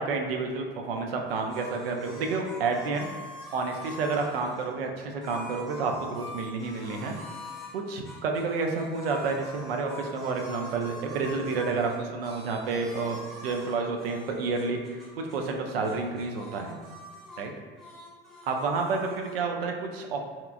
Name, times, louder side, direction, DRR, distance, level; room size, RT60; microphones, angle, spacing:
voice 1, 0.0-3.1 3.5-7.1 7.7-15.0 15.3-16.8 17.4-17.5 18.5-20.2, right 4 dB, 75° right, 2 dB, 0.5 m, -30 dB
sound 1, 1.3-4.7 5.2-7.7 8.0-15.6 15.8-17.5 17.7-19.3, left 1 dB, ahead, 0.8 m, -45 dB
2.9 x 2.3 x 2.4 m, 1.5 s
hypercardioid pair, 75°, 29 cm